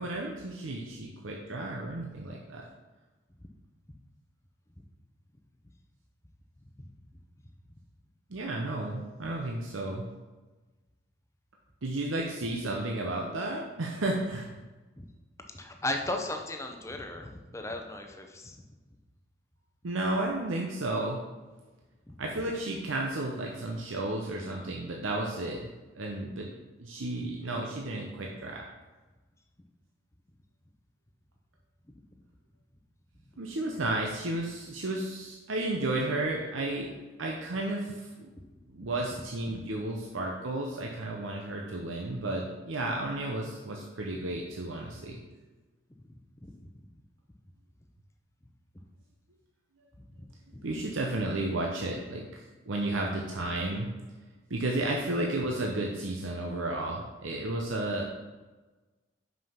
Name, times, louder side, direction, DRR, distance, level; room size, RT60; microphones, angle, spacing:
voice 1, 0.0-2.6 8.3-10.1 11.8-14.6 19.8-21.2 22.2-25.7 25.9-26.5 26.8-28.7 33.4-36.9 37.2-38.3 38.7-45.2 50.6-53.9 54.5-58.3, right 2 dB, 80° right, 0 dB, 0.8 m, -33 dB
voice 2, 15.5-18.6 22.1-22.2 46.6-46.7, left 1 dB, 15° left, 4 dB, 0.6 m, -36 dB
5.6 x 5.5 x 5.6 m, 1.2 s
head